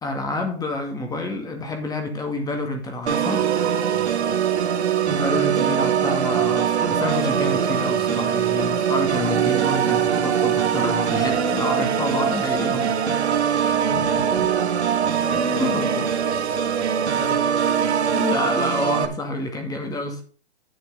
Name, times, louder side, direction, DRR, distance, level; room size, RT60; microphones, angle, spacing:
voice 1, 0.0-3.5 5.0-13.2 13.5-13.7 15.6-16.1 18.1-20.2, left 2 dB, 10° left, 2.1 m, -28 dB
Organ, 3.1-19.1, right 8 dB, 80° right, 1.7 m, -22 dB
voice 2, 4.2-4.7 13.8-14.5 15.1-16.1 16.5-17.7, left 4 dB, 45° left, 4.0 m, -36 dB
10.5 x 6.9 x 5.0 m
hypercardioid pair, 140°, 33 cm